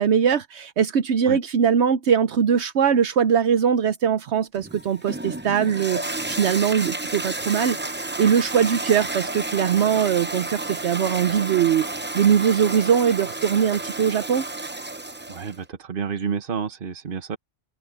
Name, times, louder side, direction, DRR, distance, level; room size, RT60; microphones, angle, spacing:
voice 1, 0.0-11.9 12.1-14.5, right 8 dB, 75° right, 1.0 m, -21 dB
Toilet flush, 4.5-15.6, right 2 dB, 10° right, 0.6 m, -31 dB
voice 2, 15.3-17.4, right 6 dB, 50° right, 1.2 m, -30 dB
open air
omnidirectional pair, 1.2 m